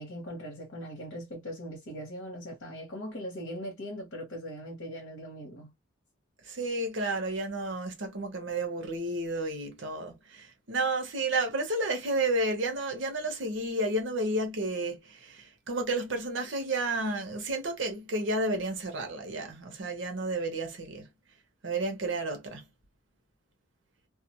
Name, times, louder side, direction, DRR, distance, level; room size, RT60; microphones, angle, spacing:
voice 1, 0.0-5.7, equal, 75° left, 1.0 m, -40 dB
voice 2, 6.5-21.1 21.6-22.6, right 2 dB, 70° right, 0.8 m, -31 dB
2.4 x 2.2 x 2.9 m
head